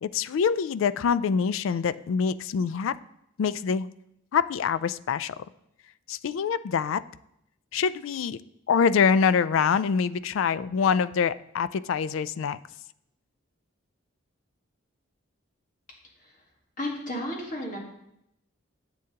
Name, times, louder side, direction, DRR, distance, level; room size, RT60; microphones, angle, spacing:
voice 1, 0.0-3.0 3.4-3.9 4.3-5.4 6.1-7.0 7.7-8.4 8.7-12.6, left 6 dB, 70° left, 16 dB, 0.3 m, -25 dB
voice 2, 16.8-17.8, left 1 dB, 40° left, -1 dB, 1.5 m, -33 dB
11.0 x 7.8 x 2.9 m, 0.80 s
head